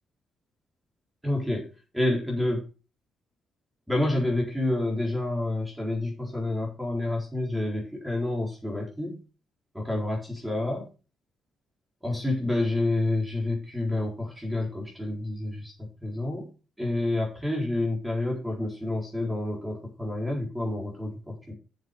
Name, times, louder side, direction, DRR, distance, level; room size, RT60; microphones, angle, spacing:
voice 1, 1.2-1.6 1.9-2.6 3.9-9.2 9.7-10.8 12.0-15.7 16.0-16.5 16.8-21.5, left 2 dB, 5° right, -1 dB, 4.2 m, -28 dB
7.6 x 7.3 x 5.3 m, 0.33 s
cardioid pair, 90°, 0 cm